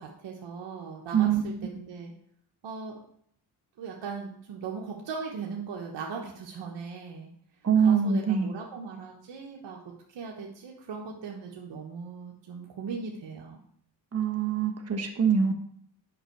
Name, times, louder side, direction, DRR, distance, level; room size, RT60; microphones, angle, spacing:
voice 1, 0.0-2.1 2.6-3.0 3.8-7.3 7.7-13.6, right 5 dB, 80° right, -2 dB, 1.3 m, -39 dB
voice 2, 7.6-8.5 14.1-15.5, right 7 dB, 35° right, 3 dB, 1.3 m, -24 dB
7.9 x 5.6 x 4.5 m, 0.67 s
cardioid pair, 80°, 43 cm